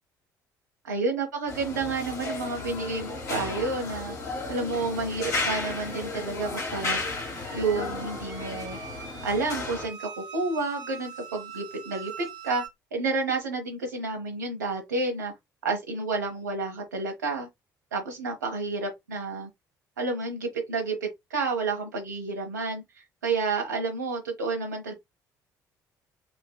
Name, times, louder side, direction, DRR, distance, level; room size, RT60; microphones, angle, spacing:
voice 1, 0.8-4.2 4.5-7.0 7.5-8.8 9.2-12.6 12.9-15.3 15.6-17.5 17.9-19.5 20.0-22.8 23.2-24.9, right 3 dB, 75° right, 1.0 m, -30 dB
sound 1, 1.5-9.9, left 3 dB, 70° left, 1.4 m, -34 dB
sound 2, 5.1-12.7, right 7 dB, 45° right, 0.8 m, -44 dB
5.1 x 2.2 x 2.2 m
figure-of-eight pair, 50°, 10 cm